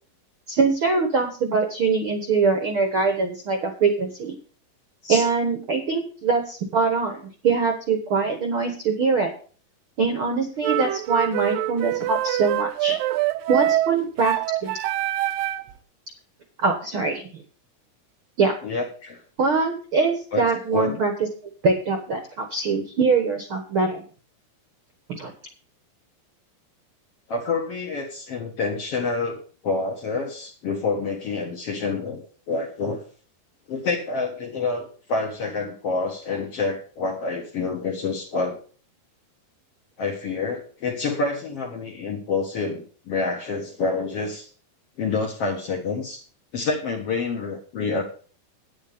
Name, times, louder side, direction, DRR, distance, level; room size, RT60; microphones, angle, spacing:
voice 1, 0.5-4.3 5.1-9.3 10.0-13.0 13.5-14.3 14.6-14.8 16.6-17.2 18.4-18.5 19.4-21.1 21.6-24.0 25.1-25.3, right 4 dB, 60° right, 4 dB, 1.4 m, -23 dB
sound 1, 10.6-15.7, right 15 dB, 80° right, 2.2 m, -25 dB
voice 2, 18.6-19.2 20.3-21.0 27.3-33.0 33.7-38.6 40.0-44.5 45.0-46.2 46.5-48.0, left 3 dB, 55° left, 2 dB, 1.8 m, -28 dB
9.5 x 9.4 x 5.1 m, 0.41 s
omnidirectional pair, 4.2 m